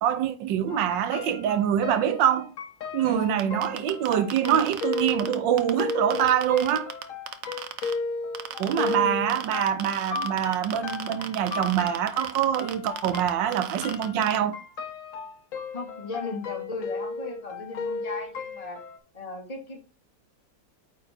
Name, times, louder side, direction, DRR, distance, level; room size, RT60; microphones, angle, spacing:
voice 1, 0.0-2.5 2.9-6.9 8.6-14.6, right 10 dB, 80° right, 1.4 m, -25 dB
sound 1, 0.7-19.0, left 4 dB, 55° left, 1.1 m, -35 dB
voice 2, 3.0-3.6 8.8-9.4 15.7-18.8 19.1-19.8, left 3 dB, 20° left, 1.8 m, -36 dB
sound 2, 3.4-7.9 8.3-9.0 9.3-14.4, right 9 dB, 60° right, 0.9 m, -35 dB
8.8 x 3.5 x 4.2 m
omnidirectional pair, 2.0 m